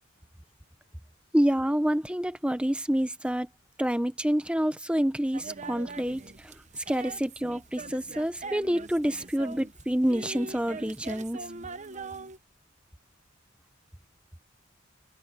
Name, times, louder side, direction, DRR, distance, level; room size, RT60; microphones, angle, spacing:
voice 1, 1.3-3.5 3.8-6.5 6.9-11.4, equal, 5° right, 1.0 m, -27 dB
sound 1, 5.3-12.4, right 3 dB, 35° right, 0.9 m, -42 dB
open air
head